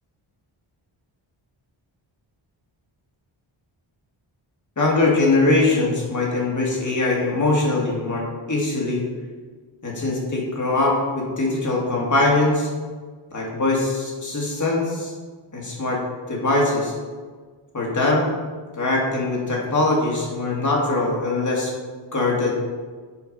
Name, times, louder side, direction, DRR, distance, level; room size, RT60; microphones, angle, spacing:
voice 1, 4.8-9.0 9.8-12.7 13.3-15.1 15.5-16.0 16.3-16.9 17.7-18.3 18.7-21.7 22.1-22.5, left 2 dB, 40° left, -3 dB, 2.2 m, -22 dB
7.2 x 4.6 x 5.2 m, 1.5 s
wide cardioid pair, 110°, 48 cm